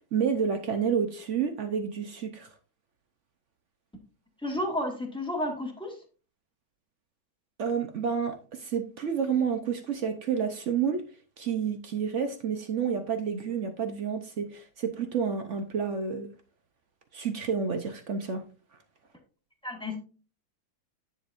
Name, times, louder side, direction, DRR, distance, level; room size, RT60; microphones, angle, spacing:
voice 1, 0.1-2.5 7.6-11.0 11.4-16.3 17.1-18.4, right 6 dB, 65° right, 7 dB, 0.7 m, -29 dB
voice 2, 4.4-5.9 19.6-20.0, left 1 dB, 5° left, 0 dB, 1.5 m, -31 dB
10.0 x 7.2 x 2.5 m, 0.36 s
omnidirectional pair, 2.2 m